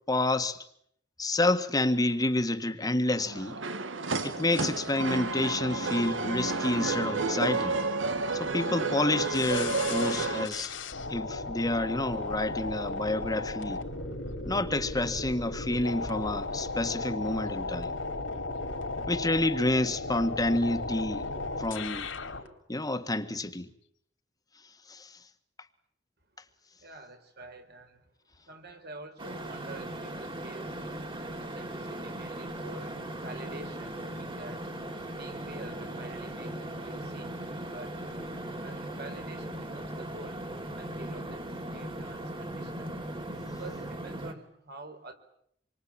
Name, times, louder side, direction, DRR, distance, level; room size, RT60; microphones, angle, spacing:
voice 1, 0.1-0.6 1.2-3.6 4.2-7.8 8.3-10.7 11.1-13.8 14.4-17.9 19.1-21.3 21.6-22.1 22.7-23.7 24.9-25.1 43.5-43.6, left 2 dB, 20° left, 1.7 m, -29 dB
sound 1, 3.1-10.5, right 3 dB, 90° right, 1.9 m, -31 dB
sound 2, 9.3-22.5, left 3 dB, 85° left, 3.7 m, -35 dB
voice 2, 26.8-28.1 28.4-30.8 31.4-34.6 35.1-37.4 37.7-37.9 38.6-40.5 40.8-42.9 43.6-45.2, right 2 dB, 60° right, 4.5 m, -47 dB
sound 3, 29.2-44.3, right 1 dB, 30° right, 3.3 m, -38 dB
27.5 x 24.0 x 8.9 m
head